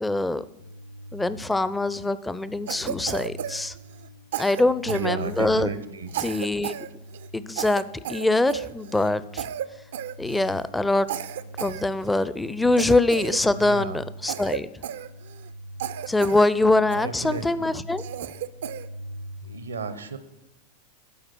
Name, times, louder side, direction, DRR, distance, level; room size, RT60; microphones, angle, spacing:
voice 1, 0.0-0.4 1.1-3.7 4.4-5.7 6.2-6.7 7.3-7.8 8.1-9.5 10.2-11.1 11.6-14.7 16.1-18.0, left 2 dB, 10° left, 15 dB, 0.5 m, -23 dB
sound 1, 0.6-19.4, equal, 75° left, 3.6 m, -44 dB
Cough, 2.7-4.1 4.3-5.6 6.1-6.9 7.1-7.3 7.6-9.1 9.4-9.7 9.9-10.6 11.1-12.3 12.8-13.8 14.3-15.5 15.8-16.5 16.9-17.5 18.0-18.9, right 10 dB, 70° right, 0.4 m, -34 dB
voice 2, 4.9-6.1 13.5-14.0 17.0-17.7 19.4-20.2, right 4 dB, 85° right, 12 dB, 0.8 m, -33 dB
12.0 x 4.8 x 6.1 m, 0.93 s
hypercardioid pair, 95°, 0 cm